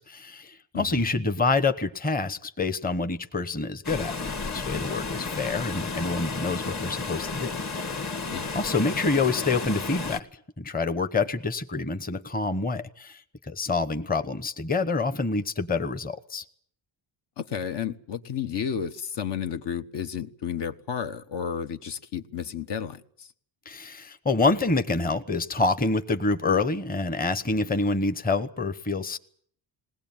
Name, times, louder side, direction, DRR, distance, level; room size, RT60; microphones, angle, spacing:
voice 1, 0.0-4.1 4.5-7.9 8.5-10.3 10.6-16.4 23.7-29.2, left 3 dB, 20° left, 1.0 m, -27 dB
voice 2, 0.7-1.1 8.3-8.5 17.4-23.3, left 8 dB, 65° left, 1.4 m, -32 dB
Water, 3.8-10.2, left 4 dB, 35° left, 1.8 m, -32 dB
20.5 x 19.0 x 9.0 m
cardioid pair, 130°, 45 cm